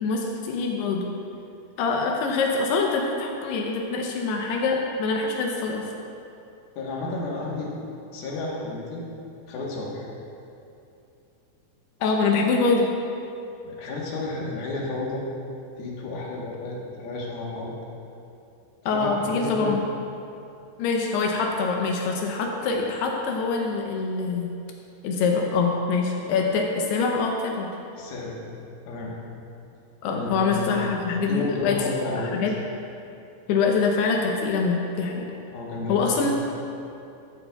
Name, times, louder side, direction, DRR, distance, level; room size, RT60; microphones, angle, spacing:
voice 1, 0.0-1.1 1.8-5.9 12.0-12.9 18.9-19.9 20.8-24.5 25.0-27.7 30.0-31.8 32.1-32.5 33.5-35.3 35.9-36.3, left 4 dB, 80° left, 1 dB, 2.4 m, -24 dB
voice 2, 6.8-7.9 8.1-9.0 9.5-10.1 13.6-15.2 15.8-17.7 18.9-19.7 27.9-28.4 28.9-29.1 30.1-32.3 35.5-36.3, left 2 dB, 65° left, -3 dB, 2.7 m, -32 dB
13.0 x 11.0 x 2.3 m, 2.7 s
omnidirectional pair, 5.5 m